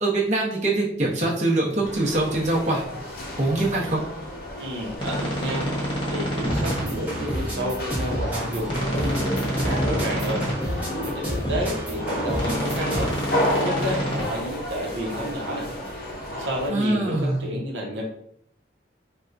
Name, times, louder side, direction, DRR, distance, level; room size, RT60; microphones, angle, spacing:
voice 1, 0.0-2.8 3.4-4.0 16.7-17.4, right 2 dB, 40° right, -5 dB, 0.8 m, -23 dB
sound 1, 1.8-16.7, left 1 dB, 55° left, 0.6 m, -33 dB
voice 2, 4.6-13.1 13.6-15.7 16.4-18.1, equal, 80° right, -2 dB, 0.8 m, -31 dB
sound 2, 5.0-6.8 8.6-10.5 12.3-14.2, equal, 25° left, 0.9 m, -28 dB
sound 3, 6.4-13.3, equal, 10° right, 0.9 m, -30 dB
4.2 x 2.2 x 2.5 m, 0.67 s
head